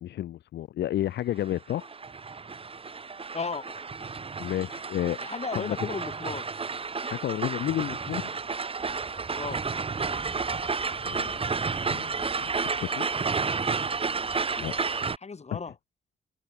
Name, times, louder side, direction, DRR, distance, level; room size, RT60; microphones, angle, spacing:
voice 1, 0.0-1.9 4.4-5.2 5.5-5.8 7.0-8.3 11.1-11.4 11.9-12.1 12.4-13.2 14.6-14.8 15.5-15.6, left 12 dB, 85° left, 0.9 m, -31 dB
sound 1, 1.5-15.2, right 4 dB, 35° right, 1.2 m, -31 dB
voice 2, 3.3-3.8 5.2-6.5 9.4-9.7 14.6-14.7 15.2-15.7, left 4 dB, 40° left, 6.1 m, -35 dB
cardioid pair, 80°, 17 cm